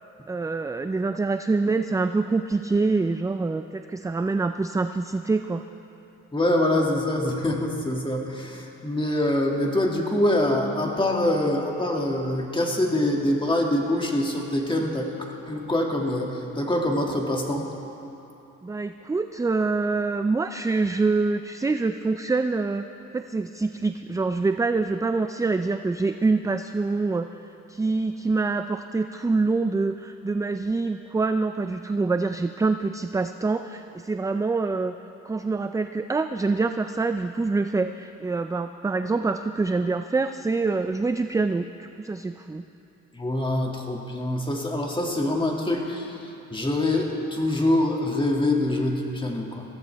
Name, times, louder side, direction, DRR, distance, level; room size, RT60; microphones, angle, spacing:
voice 1, 0.3-5.6 18.6-22.8 23.1-27.3 27.7-34.9 35.2-42.6, right 3 dB, 10° right, 8 dB, 0.4 m, -25 dB
voice 2, 6.3-15.1 15.5-17.7 43.1-46.2 46.5-49.6, left 1 dB, 15° left, 0 dB, 2.2 m, -25 dB
22.0 x 15.5 x 3.5 m, 2.9 s
cardioid pair, 90°, 30 cm